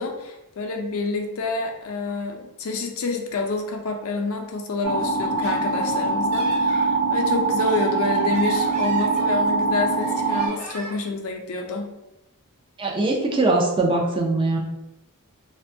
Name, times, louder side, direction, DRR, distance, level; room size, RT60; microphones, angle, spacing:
voice 1, 0.0-11.9, left 3 dB, 65° left, 2 dB, 0.4 m, -28 dB
sound 1, 4.8-10.5, right 3 dB, 60° right, 0.7 m, -23 dB
Laughter, 5.2-6.9 7.4-9.6 10.0-11.1, right 2 dB, 80° right, 1.0 m, -40 dB
voice 2, 12.8-14.6, right 2 dB, 20° right, 0 dB, 0.4 m, -21 dB
2.5 x 2.2 x 2.6 m, 0.91 s
head